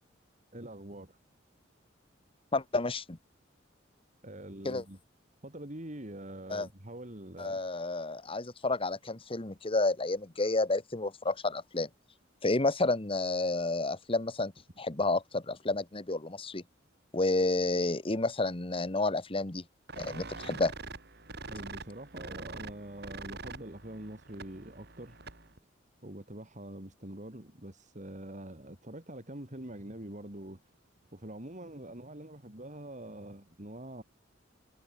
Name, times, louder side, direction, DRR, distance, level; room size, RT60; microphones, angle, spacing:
voice 1, 0.5-1.2 4.2-5.0 5.4-7.6 21.5-25.2 26.0-30.6 31.1-34.0, right 1 dB, 40° right, 3.3 m, -44 dB
voice 2, 2.5-3.2 4.6-4.8 6.5-6.7 7.4-11.9 12.4-14.5 14.8-16.6 17.1-19.6 20.0-20.7, left 2 dB, 30° left, 1.4 m, -30 dB
sound 1, 19.9-25.6, right 3 dB, 55° right, 5.3 m, -45 dB
head